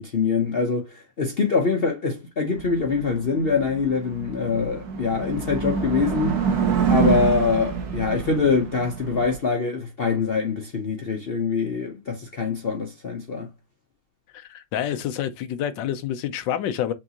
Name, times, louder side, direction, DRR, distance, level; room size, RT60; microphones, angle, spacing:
voice 1, 0.0-6.4 6.9-13.5, left 5 dB, 55° left, 0.6 m, -24 dB
sound 1, 2.5-9.3, right 6 dB, 60° right, 1.4 m, -26 dB
voice 2, 14.3-16.9, left 10 dB, 85° left, 1.3 m, -28 dB
5.9 x 2.7 x 2.8 m
omnidirectional pair, 2.0 m